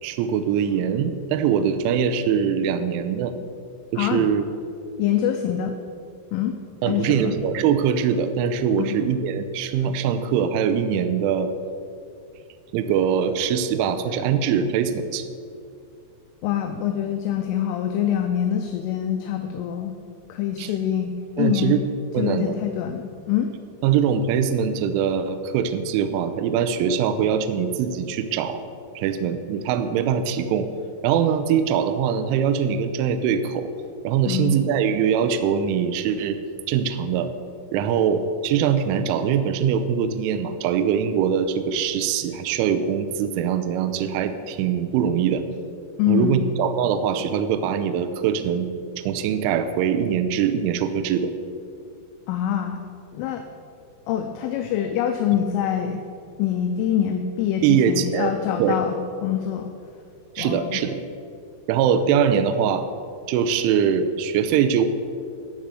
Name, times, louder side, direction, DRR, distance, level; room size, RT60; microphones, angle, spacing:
voice 1, 0.0-3.3 3.9-4.4 6.8-11.5 12.7-15.3 20.6-20.7 21.4-21.8 22.1-22.6 23.8-28.6 29.0-30.7 31.0-33.7 34.0-36.4 36.7-37.3 37.7-45.4 46.1-48.7 49.0-51.3 57.6-58.3 58.6-58.9 60.4-61.0 61.7-62.9 63.3-64.9, right 7 dB, 80° right, 10 dB, 2.9 m, -22 dB
voice 2, 4.0-4.3 5.0-5.7 6.3-6.6 6.9-7.3 8.8-9.0 16.4-19.9 20.3-21.8 22.2-23.5 34.3-34.6 46.0-46.4 52.3-52.8 53.1-53.4 54.1-56.0 56.4-59.7 60.4-60.8, left 10 dB, 80° left, 5 dB, 3.0 m, -25 dB
12.5 x 5.1 x 7.6 m, 2.4 s
omnidirectional pair, 5.9 m